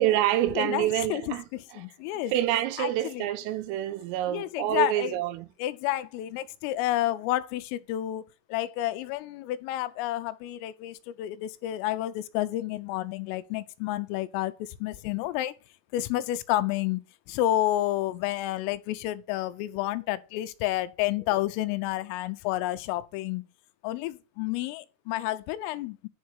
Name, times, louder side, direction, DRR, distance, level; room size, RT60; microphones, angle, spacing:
voice 1, 0.0-1.5 1.7-1.9 2.3-5.5, right 13 dB, 80° right, 3.6 m, -27 dB
voice 2, 0.6-1.2 1.8-2.3 2.8-3.3 4.3-5.1 5.6-8.2 8.5-15.5 15.9-17.0 17.3-23.4 23.8-26.1, left 14 dB, 85° left, 3.3 m, -30 dB
10.5 x 5.5 x 6.2 m
omnidirectional pair, 5.9 m